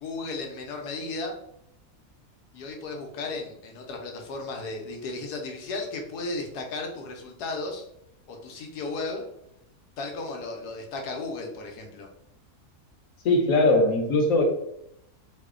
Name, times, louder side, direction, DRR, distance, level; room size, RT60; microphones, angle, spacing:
voice 1, 0.0-1.4 2.5-7.9 8.3-9.3 10.0-12.1, left 3 dB, 90° left, 2 dB, 1.3 m, -35 dB
voice 2, 13.2-14.4, left 2 dB, 65° left, 2 dB, 1.0 m, -20 dB
3.1 x 2.1 x 3.6 m, 0.75 s
omnidirectional pair, 1.7 m